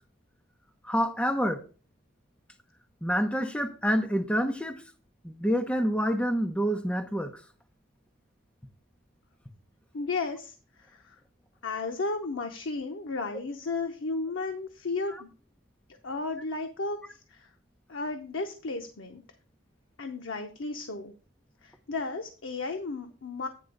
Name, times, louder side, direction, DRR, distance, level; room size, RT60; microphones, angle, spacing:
voice 1, 0.8-1.6 3.0-4.8 5.2-7.4, equal, 5° left, 0.8 m, -27 dB
voice 2, 9.9-11.2 11.6-15.3 16.0-17.5 17.9-19.2 20.0-21.1 21.6-23.5, left 3 dB, 85° left, 0.8 m, -34 dB
9.6 x 3.4 x 6.4 m
head